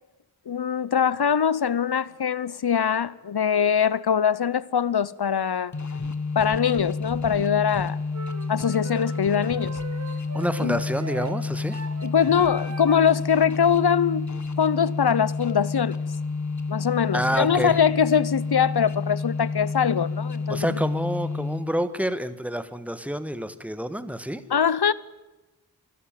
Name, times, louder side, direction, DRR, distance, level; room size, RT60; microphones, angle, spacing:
voice 1, 0.5-5.7 6.4-8.0 8.5-9.8 10.6-10.8 12.0-14.3 14.6-16.0 16.7-20.7 24.5-24.9, left 7 dB, 80° left, 0.7 m, -22 dB
sound 1, 5.7-21.9, left 4 dB, 50° left, 1.4 m, -30 dB
sound 2, 6.4-6.5 7.1-7.2 7.7-7.8 8.4-8.5 9.1-9.2 9.7-9.8 10.4-10.5 11.1-11.2 11.7-11.8 12.4-12.5 13.1-13.2 13.7-13.8, equal, 15° left, 4.6 m, -49 dB
sound 3, 8.1-13.2, right 4 dB, 45° right, 1.4 m, -39 dB
voice 2, 10.3-11.8 17.1-17.8 20.5-24.4, equal, 5° right, 1.4 m, -28 dB
25.5 x 12.5 x 9.0 m
wide cardioid pair, 60°, 38 cm